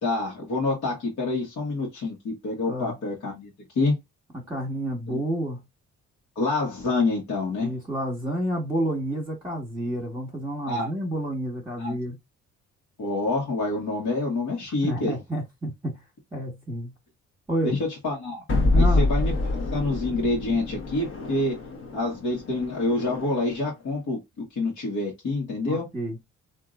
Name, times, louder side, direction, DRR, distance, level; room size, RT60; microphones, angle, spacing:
voice 1, 0.0-3.5 3.7-3.9 5.1-5.2 6.3-7.7 10.7-10.9 11.8-11.9 13.0-15.2 17.6-18.4 18.7-19.3 19.7-21.5 21.9-24.2 24.5-25.9, left 2 dB, 65° left, 1.5 m, -27 dB
voice 2, 4.3-5.6 7.6-12.1 14.8-16.0 16.3-16.9 17.5-17.7 18.7-19.1 25.7-26.2, right 1 dB, 10° right, 1.4 m, -29 dB
sound 1, 18.5-23.6, left 2 dB, 45° left, 1.2 m, -26 dB
3.6 x 2.7 x 2.5 m
cardioid pair, 90°, 30 cm